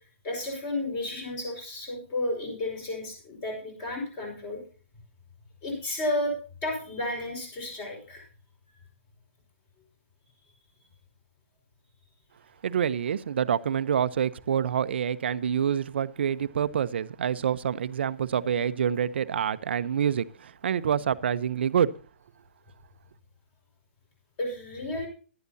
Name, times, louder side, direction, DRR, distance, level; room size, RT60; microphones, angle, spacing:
voice 1, 0.2-4.6 5.6-6.3 6.6-8.2 24.4-25.1, left 1 dB, 20° left, 5.0 m, -32 dB
voice 2, 12.6-21.9, right 8 dB, 55° right, 0.8 m, -27 dB
16.5 x 11.5 x 2.8 m
hypercardioid pair, 170°, 7 cm